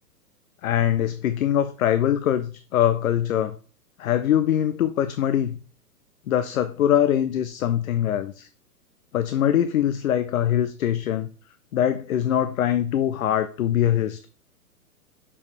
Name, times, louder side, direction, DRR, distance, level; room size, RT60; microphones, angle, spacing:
voice 1, 0.6-3.6 4.0-5.6 6.3-8.5 9.1-11.3 11.7-14.3, left 10 dB, 60° left, 0.6 m, -23 dB
6.4 x 5.6 x 3.2 m
figure-of-eight pair, 120°, 47 cm